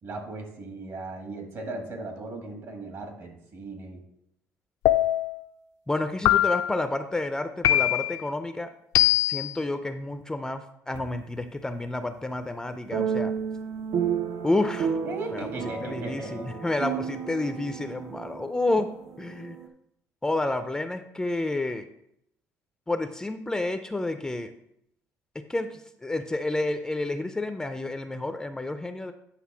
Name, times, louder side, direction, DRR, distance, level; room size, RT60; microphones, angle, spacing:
voice 1, 0.0-4.0 15.0-16.5, right 2 dB, 55° right, 3 dB, 1.7 m, -37 dB
sound 1, 4.9-5.4 6.3-6.8 7.6-8.2 8.9-9.5, left 13 dB, 85° left, 0.4 m, -22 dB
voice 2, 5.9-8.7 9.3-13.3 14.4-15.0 15.3-15.5 15.8-18.9 19.2-19.6 20.2-21.9 22.9-24.5 25.4-29.1, left 2 dB, 10° left, 8 dB, 0.4 m, -30 dB
sound 2, 10.9-11.4 12.9-19.7, right 7 dB, 80° right, 0.9 m, -32 dB
9.3 x 3.4 x 5.9 m, 0.74 s
cardioid pair, 135°, 6 cm